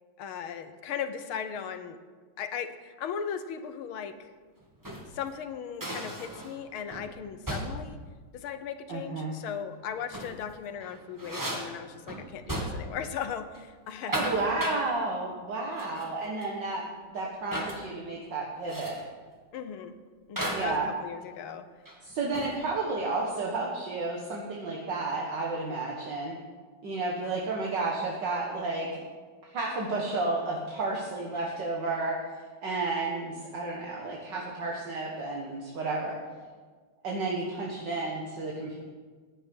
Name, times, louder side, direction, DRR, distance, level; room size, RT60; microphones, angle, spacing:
voice 1, 0.2-2.0 2.4-4.3 5.1-8.0 8.3-14.1 19.5-20.0 20.3-21.6, left 7 dB, 85° left, 9 dB, 1.8 m, -37 dB
sound 1, 4.6-5.2 5.8-6.6 6.9-7.1 7.5-7.9 9.9-10.4 10.8-13.0 13.3-13.6 13.9-14.9 15.8-16.2 16.4-16.5 17.5-17.8 18.7-19.1 20.4-20.8 21.9-22.6, right 1 dB, 10° right, 1.4 m, -35 dB
voice 2, 8.9-9.3 14.1-16.8 17.1-19.0 20.5-20.9 22.0-26.4 26.8-28.9 29.5-32.2 32.6-36.2 37.0-38.8, right 3 dB, 60° right, -2 dB, 2.2 m, -32 dB
15.5 x 10.5 x 5.4 m, 1.5 s
omnidirectional pair, 2.3 m